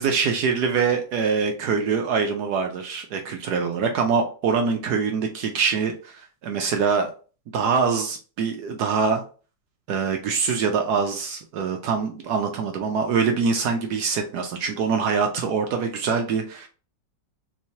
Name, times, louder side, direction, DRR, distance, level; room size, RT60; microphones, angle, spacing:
voice 1, 0.0-7.1 7.5-9.2 9.9-16.7, right 5 dB, 70° right, 4 dB, 1.1 m, -24 dB
3.5 x 3.1 x 2.7 m, 0.36 s
omnidirectional pair, 2.0 m